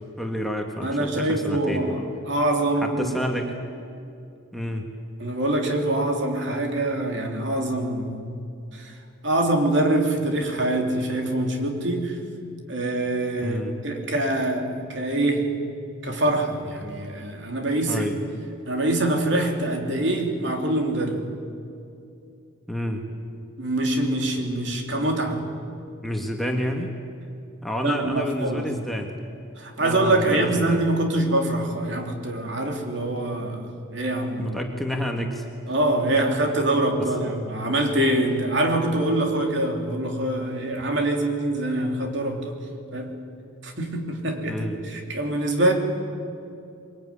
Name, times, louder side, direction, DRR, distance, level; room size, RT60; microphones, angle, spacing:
voice 1, 0.2-1.9 2.8-3.6 4.5-4.9 13.4-13.7 17.9-18.2 22.7-23.0 26.0-26.9 27.6-29.1 29.8-30.8 34.4-35.5 37.0-37.1 44.5-44.8, equal, ahead, 1 dB, 1.7 m, -29 dB
voice 2, 0.8-3.1 5.2-8.3 8.7-8.9 9.2-12.2 12.7-15.5 16.0-18.1 18.7-21.3 23.6-25.4 27.8-28.7 29.6-34.6 35.7-42.6 42.9-43.2 43.6-45.7, right 1 dB, 55° right, 2 dB, 3.4 m, -24 dB
23.0 x 22.0 x 9.9 m, 2.5 s
head